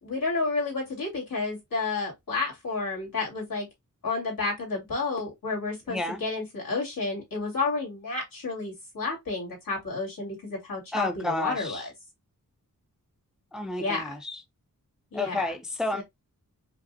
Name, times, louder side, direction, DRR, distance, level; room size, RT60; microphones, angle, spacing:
voice 1, 0.0-3.7 4.0-11.9 13.8-14.0 15.1-15.4 15.9-16.0, left 3 dB, 80° left, 2.1 m, -31 dB
voice 2, 5.9-6.2 10.9-11.8 13.5-14.4 15.1-16.0, left 2 dB, ahead, 0.5 m, -31 dB
5.0 x 2.0 x 2.6 m
wide cardioid pair, 85°, 34 cm